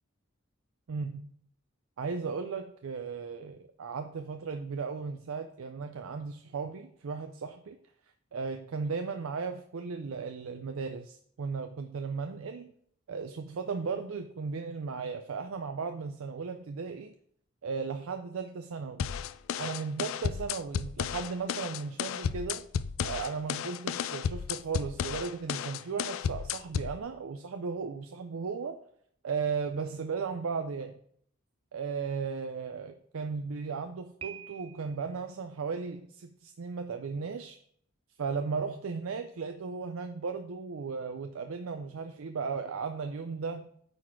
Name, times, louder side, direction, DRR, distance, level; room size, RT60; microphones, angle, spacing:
voice 1, 0.9-1.2 2.0-7.8 8.3-12.7 13.1-17.1 17.6-19.0 19.6-22.7 23.0-28.8 29.2-31.0 31.7-37.6 38.2-43.7, right 5 dB, 90° right, 7 dB, 0.5 m, -36 dB
sound 1, 19.0-27.0, left 7 dB, 75° left, 0.3 m, -33 dB
Piano, 34.2-35.2, right 8 dB, 25° right, 0.3 m, -46 dB
8.8 x 4.2 x 4.5 m, 0.65 s
head